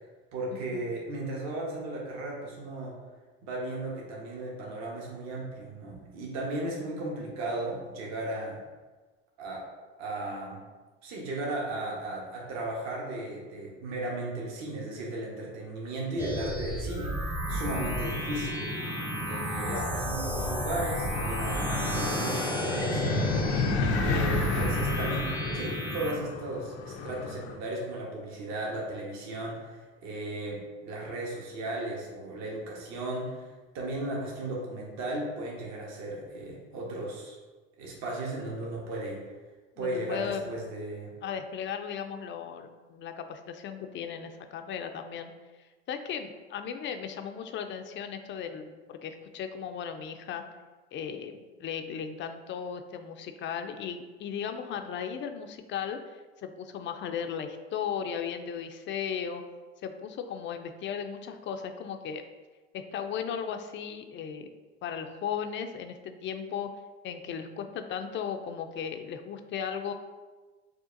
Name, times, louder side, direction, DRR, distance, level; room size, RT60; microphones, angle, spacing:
voice 1, 0.3-2.9 3.4-8.6 9.4-9.6 10.0-10.6 11.0-18.6 18.9-19.0 19.3-21.7 21.9-23.2 24.0-33.5 33.7-37.4 37.8-39.2 39.8-41.1, right 2 dB, 55° right, -3 dB, 1.2 m, -35 dB
sound 1, 16.2-26.1, equal, 5° right, 0.7 m, -32 dB
sound 2, 17.5-27.6, left 3 dB, 85° left, 0.6 m, -32 dB
voice 2, 23.8-24.3 39.8-40.6 41.2-45.3 45.9-50.4 50.9-59.4 59.8-62.2 62.7-64.5 64.8-66.7 67.0-69.9, left 7 dB, 35° left, 7 dB, 0.4 m, -36 dB
6.2 x 2.4 x 2.6 m, 1.3 s
hypercardioid pair, 85°, 32 cm